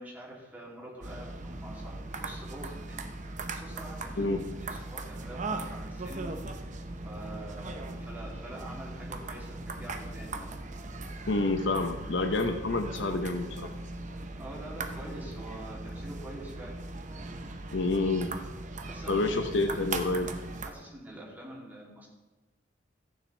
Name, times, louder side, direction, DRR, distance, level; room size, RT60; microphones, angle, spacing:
voice 1, 0.0-4.4 4.7-10.5 14.4-16.8 18.9-19.3 19.6-20.0 20.6-22.1, right 1 dB, 10° right, -5 dB, 2.9 m, -46 dB
sound 1, 1.0-20.7, right 2 dB, 40° right, 0.8 m, -39 dB
voice 2, 11.3-13.7 17.7-18.3 19.1-20.3, left 2 dB, 70° left, 7 dB, 0.9 m, -28 dB
14.5 x 9.6 x 3.3 m, 1.1 s
head